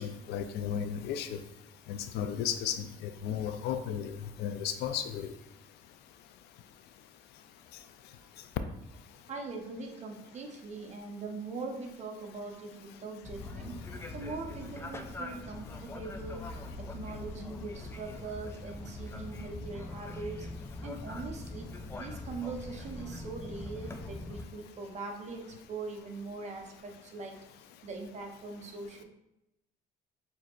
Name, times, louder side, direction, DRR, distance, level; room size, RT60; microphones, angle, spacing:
voice 1, 0.0-1.4 1.9-5.4 7.7-8.5, left 8 dB, 80° left, 9 dB, 0.4 m, -35 dB
voice 2, 9.3-13.8 14.1-16.5 16.7-20.5 20.8-27.4 27.8-29.0, right 3 dB, 40° right, 2 dB, 0.8 m, -41 dB
sound 1, 13.2-24.4, left 2 dB, 15° left, 0.3 m, -42 dB
6.3 x 2.7 x 2.4 m, 0.89 s
cardioid pair, 110°, 17 cm